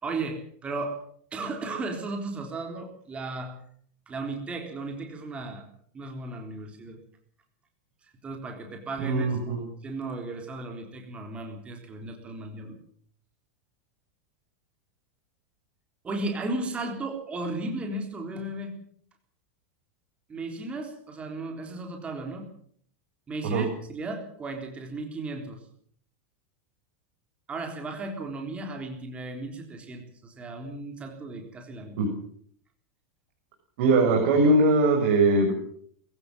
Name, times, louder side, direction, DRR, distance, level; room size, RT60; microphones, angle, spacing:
voice 1, 0.0-1.0 1.3-3.5 4.1-5.7 5.9-7.0 8.2-12.8 16.0-18.7 20.3-22.5 23.3-25.6 27.5-32.1, right 2 dB, 15° right, 3 dB, 3.8 m, -35 dB
voice 2, 9.0-9.6 23.4-23.6 32.0-32.1 33.8-35.5, right 2 dB, 55° right, 2 dB, 6.6 m, -21 dB
23.5 x 16.0 x 7.9 m, 0.63 s
supercardioid pair, 160°, 7 cm